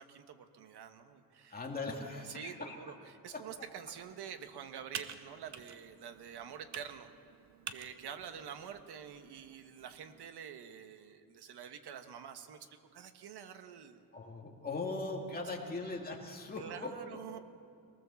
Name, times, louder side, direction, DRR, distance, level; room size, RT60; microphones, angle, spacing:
voice 1, 0.0-7.1 7.7-14.0 15.6-16.0 16.6-17.4, right 8 dB, 80° right, 8 dB, 1.4 m, -47 dB
voice 2, 1.5-2.7 3.3-3.4 14.1-17.4, left 3 dB, 25° left, 0 dB, 2.5 m, -40 dB
Computer keyboard, 3.5-10.3, right 7 dB, 45° right, 0.9 m, -50 dB
23.0 x 18.5 x 7.1 m, 2.4 s
wide cardioid pair, 170°, 39 cm